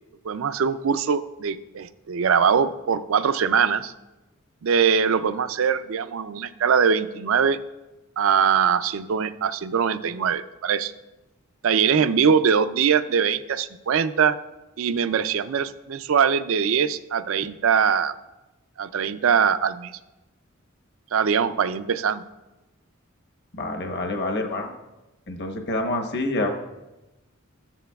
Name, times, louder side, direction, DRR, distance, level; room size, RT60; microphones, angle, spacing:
voice 1, 0.2-3.9 4.6-7.6 8.2-10.9 11.6-14.4 14.8-18.1 18.8-19.9 21.1-22.2, right 7 dB, 70° right, 12 dB, 0.4 m, -22 dB
voice 2, 23.5-24.7 25.3-26.5, left 2 dB, 55° left, 3 dB, 1.0 m, -27 dB
14.0 x 9.0 x 2.3 m, 1.0 s
head